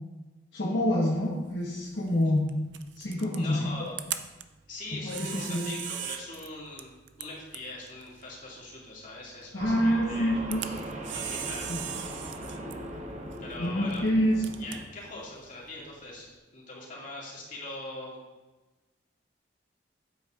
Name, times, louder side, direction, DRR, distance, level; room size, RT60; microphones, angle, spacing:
voice 1, 0.5-2.5 3.0-3.7 5.0-5.7 9.5-10.6 11.7-11.8 13.6-14.4, left 1 dB, 70° left, -5 dB, 1.3 m, -27 dB
Camera, 0.9-16.4, right 11 dB, 70° right, 0.5 m, -42 dB
voice 2, 3.3-3.9 4.7-10.3 11.1-12.6 13.4-14.0 14.6-18.2, left 2 dB, 45° left, -5 dB, 2.4 m, -42 dB
sound 1, 9.6-14.9, right 1 dB, 40° right, 0.9 m, -39 dB
8.8 x 8.4 x 2.5 m, 1.2 s
head